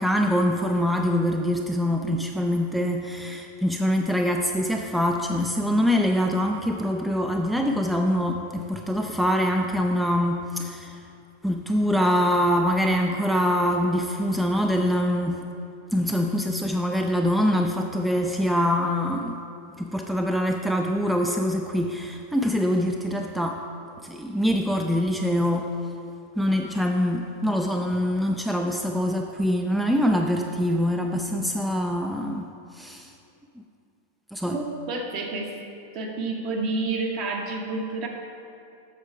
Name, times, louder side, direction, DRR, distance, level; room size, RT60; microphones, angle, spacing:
voice 1, 0.0-11.0 11.4-15.4 15.9-19.4 19.8-23.6 24.0-25.7 26.4-33.1 34.3-34.6, equal, 5° right, 3 dB, 0.4 m, -24 dB
voice 2, 34.5-35.5 35.9-38.1, right 3 dB, 40° right, 1 dB, 1.2 m, -29 dB
7.5 x 6.5 x 4.7 m, 2.6 s
figure-of-eight pair, 90°, 0 cm